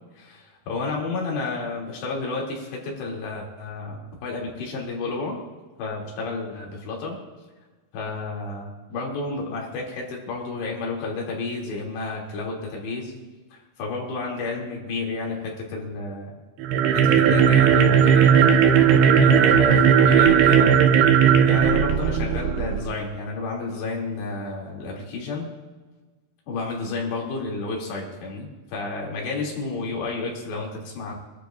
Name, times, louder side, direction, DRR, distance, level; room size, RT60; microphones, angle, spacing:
voice 1, 0.2-5.4 5.8-7.2 7.9-13.1 13.5-16.4 16.9-18.4 19.2-20.8 21.4-25.5 26.5-31.1, left 3 dB, 80° left, -2 dB, 5.1 m, -31 dB
sound 1, 16.6-22.9, right 7 dB, 75° right, 2.9 m, -16 dB
25.5 x 12.0 x 2.6 m, 1.3 s
omnidirectional pair, 4.9 m